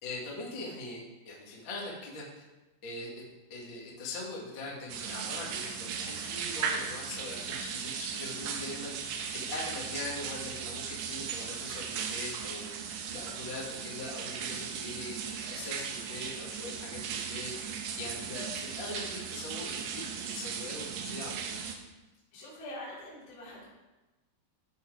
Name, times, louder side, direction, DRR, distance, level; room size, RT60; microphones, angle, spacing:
voice 1, 0.0-2.3 2.8-3.1 3.5-21.6, left 2 dB, 45° left, -4 dB, 1.6 m, -42 dB
sound 1, 4.9-21.8, right 7 dB, 80° right, 2.4 m, -37 dB
voice 2, 22.3-23.7, left 1 dB, 70° left, -8 dB, 6.2 m, -44 dB
16.5 x 5.7 x 4.0 m, 1.1 s
omnidirectional pair, 5.8 m